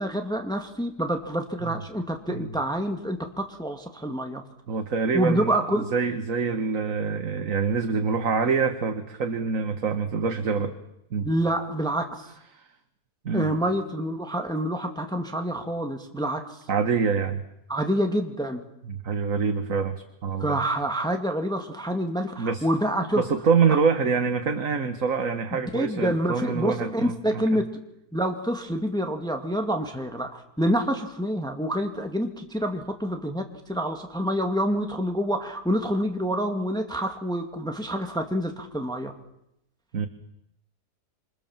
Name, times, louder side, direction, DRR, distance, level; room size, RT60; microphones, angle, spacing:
voice 1, 0.0-4.4 5.1-5.9 11.2-12.3 13.3-16.6 17.7-18.6 20.4-23.3 23.7-23.8 25.5-27.8 28.1-39.1, equal, ahead, 4 dB, 2.3 m, -27 dB
voice 2, 4.7-10.8 11.1-11.3 12.5-12.7 13.3-13.5 16.7-17.4 18.8-20.6 22.4-22.6 23.2-27.6 39.9-40.1, right 5 dB, 55° right, 7 dB, 1.9 m, -26 dB
27.5 x 27.5 x 7.4 m, 0.81 s
omnidirectional pair, 1.7 m